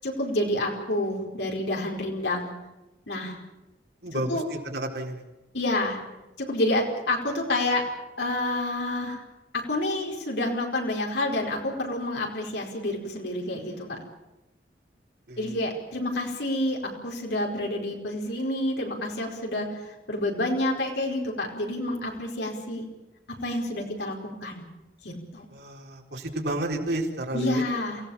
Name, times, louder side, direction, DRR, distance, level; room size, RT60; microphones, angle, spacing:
voice 1, 0.0-2.5 3.1-3.4 4.1-4.4 5.5-6.0 6.4-7.8 8.2-9.2 9.7-14.0 15.4-22.8 23.4-24.6 25.0-25.4 27.3-28.0, left 1 dB, 90° left, 0 dB, 4.8 m, -28 dB
voice 2, 4.0-5.2 15.3-15.5 25.5-27.6, right 1 dB, 75° right, 0 dB, 4.3 m, -31 dB
28.0 x 17.0 x 7.3 m, 1.0 s
head